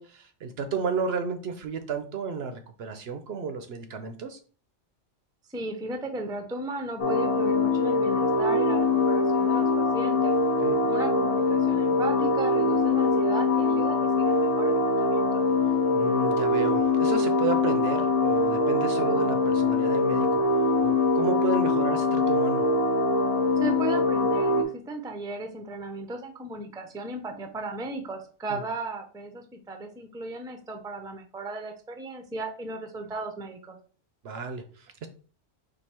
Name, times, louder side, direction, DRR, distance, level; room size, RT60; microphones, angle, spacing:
voice 1, 0.0-4.4 10.6-10.8 15.9-20.4 20.8-22.7 28.5-28.6 34.2-35.1, right 5 dB, 65° right, 7 dB, 0.8 m, -32 dB
voice 2, 5.5-10.3 10.9-15.4 23.6-24.5 24.9-33.8, right 2 dB, 5° right, 4 dB, 0.5 m, -36 dB
sound 1, 7.0-24.6, left 3 dB, 40° left, 0.7 m, -23 dB
4.5 x 2.7 x 4.2 m, 0.40 s
omnidirectional pair, 1.2 m